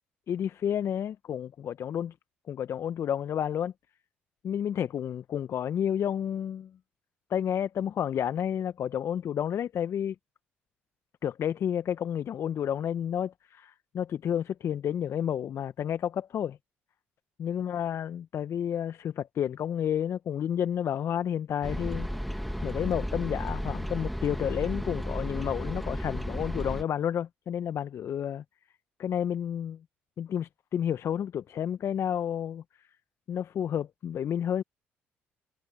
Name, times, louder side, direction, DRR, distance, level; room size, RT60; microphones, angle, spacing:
voice 1, 0.3-2.1 2.5-3.7 4.4-6.7 7.3-10.1 11.2-16.6 17.4-22.1 22.6-28.4 29.0-29.8 30.2-32.6 33.3-34.6, left 9 dB, 55° left, 1.3 m, -30 dB
sound 1, 21.6-26.8, equal, ahead, 3.1 m, -33 dB
hypercardioid pair, 50°, 6 cm